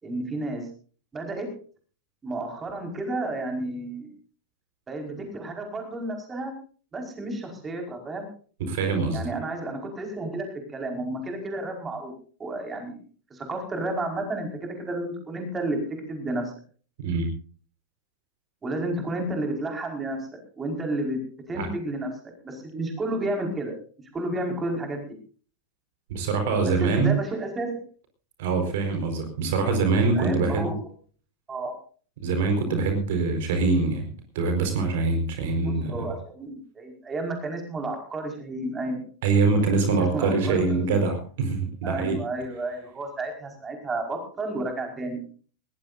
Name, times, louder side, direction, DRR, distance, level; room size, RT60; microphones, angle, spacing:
voice 1, 0.0-0.7 1.1-1.5 2.2-4.1 4.9-6.5 6.9-8.3 9.1-12.1 12.4-13.0 13.3-15.8 16.1-16.4 18.6-20.2 20.6-21.2 21.5-22.1 22.4-23.7 24.1-25.1 26.6-27.8 30.1-30.8 31.5-31.7 35.6-39.0 39.9-41.0 41.8-45.2, right 2 dB, 15° right, 3 dB, 5.1 m, -31 dB
voice 2, 8.6-9.2 17.0-17.3 21.5-21.7 26.1-27.2 28.4-30.8 32.2-35.9 39.2-42.2, right 4 dB, 55° right, 5 dB, 4.6 m, -24 dB
21.0 x 19.0 x 2.7 m, 0.42 s
figure-of-eight pair, 90°, 0 cm